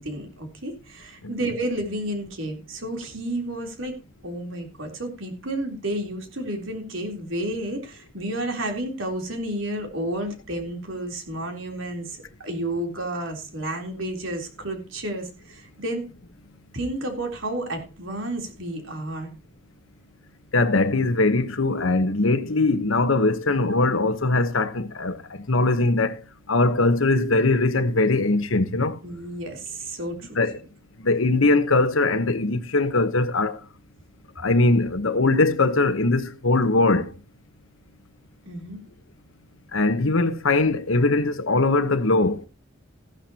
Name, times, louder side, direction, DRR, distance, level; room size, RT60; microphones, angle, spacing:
voice 1, 0.0-3.9 4.2-12.2 12.4-16.1 16.7-19.3 29.0-30.4 38.5-38.8, right 1 dB, 75° right, 3.6 m, -31 dB
voice 2, 20.5-26.2 26.5-29.0 30.4-30.5 31.0-33.6 34.4-37.1 39.7-42.4, left 2 dB, 80° left, 1.2 m, -21 dB
15.0 x 12.0 x 2.9 m
head